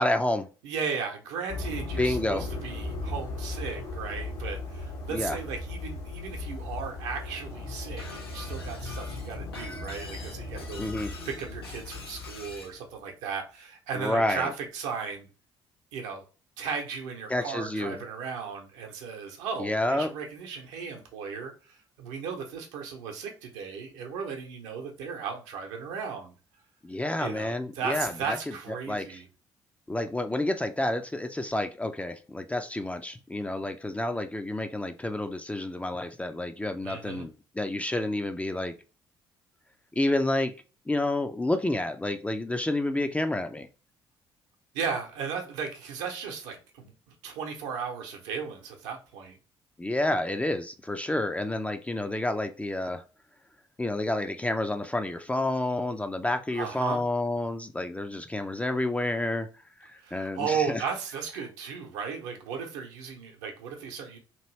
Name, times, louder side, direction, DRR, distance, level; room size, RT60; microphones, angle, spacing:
voice 1, 0.0-0.5 2.0-2.5 5.1-5.4 10.8-11.1 14.0-14.5 17.3-18.0 19.6-20.1 26.8-28.4 28.7-29.2 29.9-38.7 40.0-40.5 40.9-43.7 49.8-53.0 53.8-59.5 59.8-60.8, left 1 dB, 10° left, 7 dB, 0.4 m, -29 dB
voice 2, 0.6-10.8 11.2-15.3 15.9-16.2 16.6-26.3 27.2-29.3 36.8-37.3 44.7-46.9 47.2-49.4 56.5-57.0 60.0-64.2, right 6 dB, 65° right, 3 dB, 0.8 m, -35 dB
sound 1, 1.5-12.9, left 2 dB, 70° left, 1.1 m, -37 dB
Shatter, 8.0-12.7, left 3 dB, 90° left, 0.6 m, -45 dB
3.0 x 2.6 x 3.1 m, 0.34 s
figure-of-eight pair, 50°, 12 cm